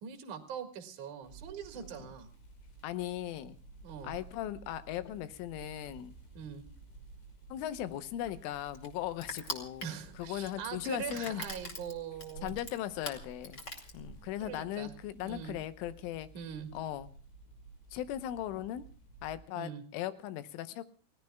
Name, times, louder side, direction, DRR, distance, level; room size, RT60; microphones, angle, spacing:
voice 1, 0.0-2.3 3.8-4.1 6.3-6.6 9.8-12.5 14.4-14.9 15.2-15.6 16.3-16.7 19.5-19.8, right 7 dB, 55° right, 4 dB, 2.6 m, -42 dB
sound 1, 1.2-19.4, right 3 dB, 65° left, 7.4 m, -54 dB
voice 2, 2.8-3.6 4.0-6.1 7.5-11.4 12.4-13.6 13.9-16.3 16.7-17.2 17.9-18.9 19.2-20.8, left 12 dB, 90° left, 12 dB, 3.4 m, -38 dB
Crushing, 7.7-14.5, left 1 dB, 30° left, 2.0 m, -44 dB
29.5 x 17.0 x 2.2 m, 0.41 s
omnidirectional pair, 5.5 m